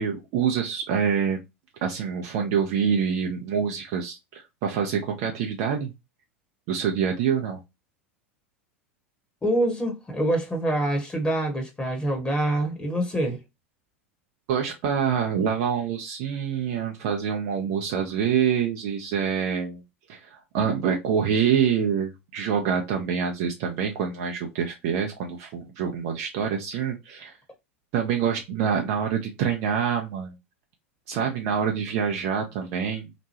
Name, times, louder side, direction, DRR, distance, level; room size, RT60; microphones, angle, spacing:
voice 1, 0.0-1.4 1.8-5.9 6.7-7.6 14.5-19.8 20.1-27.4 27.9-30.4 31.1-33.1, right 7 dB, 45° right, 0.6 m, -26 dB
voice 2, 9.4-13.4, right 1 dB, 15° left, 1.0 m, -25 dB
2.9 x 2.2 x 2.7 m
figure-of-eight pair, 85°, 7 cm